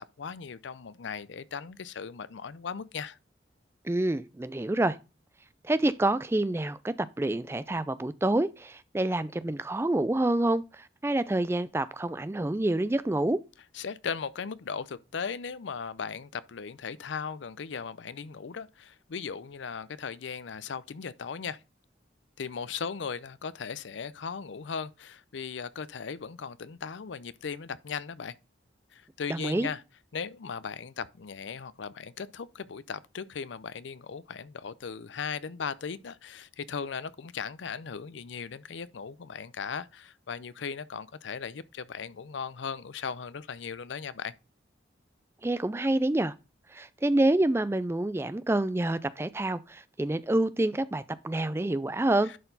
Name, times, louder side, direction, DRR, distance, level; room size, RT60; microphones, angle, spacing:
voice 1, 0.0-3.2 13.7-21.6 22.4-28.4 28.9-29.8 30.1-44.3 52.2-52.4, left 6 dB, 75° left, 0.5 m, -37 dB
voice 2, 3.8-5.0 5.6-13.4 29.3-29.7 45.4-46.3 46.7-52.3, right 1 dB, 15° right, 0.3 m, -27 dB
11.0 x 4.4 x 3.9 m
head